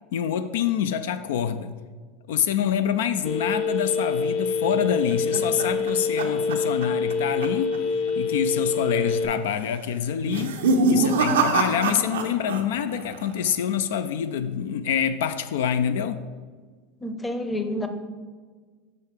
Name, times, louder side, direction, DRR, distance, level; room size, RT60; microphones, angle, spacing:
voice 1, 0.1-1.7 2.3-7.8 8.2-10.6 10.9-16.2, left 8 dB, 75° left, 0.3 m, -26 dB
Telephone, 3.3-9.3, left 4 dB, 50° left, 0.8 m, -26 dB
sound 1, 4.6-7.1 7.4-7.8 8.1-8.2 8.9-9.3 10.2-12.6 12.9-13.5, right 3 dB, 85° right, 0.6 m, -25 dB
voice 2, 17.0-17.9, left 1 dB, 10° left, 0.7 m, -28 dB
5.7 x 5.0 x 4.6 m
hypercardioid pair, 95°, 0 cm